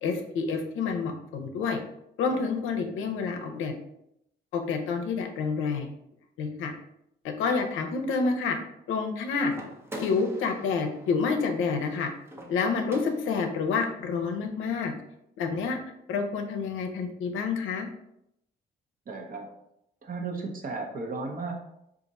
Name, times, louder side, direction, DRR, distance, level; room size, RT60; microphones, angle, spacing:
voice 1, 0.0-1.8 2.2-3.7 4.5-5.9 6.4-6.7 7.2-8.6 8.9-9.5 10.0-12.1 12.5-14.9 15.4-15.8 16.1-17.9, left 5 dB, 85° left, 5 dB, 0.6 m, -28 dB
sound 1, 9.5-13.6, equal, 10° right, 0.6 m, -44 dB
voice 2, 19.1-19.5 20.0-21.5, right 3 dB, 45° right, 2 dB, 0.8 m, -34 dB
2.5 x 2.5 x 4.0 m, 0.79 s
cardioid pair, 90°, 20 cm